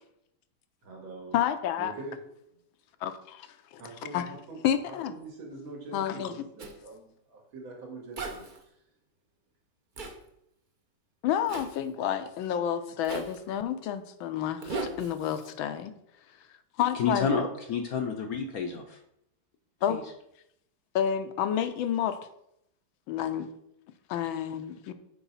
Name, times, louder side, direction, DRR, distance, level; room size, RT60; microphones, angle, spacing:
voice 1, 0.8-1.3 1.8-2.2 2.5-2.6 3.8-4.6 4.9-8.8 14.4-15.0, right 3 dB, 80° right, 2.8 m, -44 dB
voice 2, 1.3-1.9 3.0-3.8 4.1-4.2 4.6-5.1 5.9-6.3 11.2-15.9 16.8-17.3 19.8-20.0 20.9-22.2 23.1-23.5 24.1-24.9, left 9 dB, 85° left, 1.5 m, -29 dB
Zipper (clothing), 6.6-6.8 8.2-8.6 10.0-10.2 11.5-11.8 13.0-13.4 14.6-15.5, right 3 dB, 50° right, 0.6 m, -37 dB
voice 3, 16.9-19.0 19.9-20.0, left 5 dB, 65° left, 0.9 m, -30 dB
7.1 x 4.7 x 5.6 m
omnidirectional pair, 2.1 m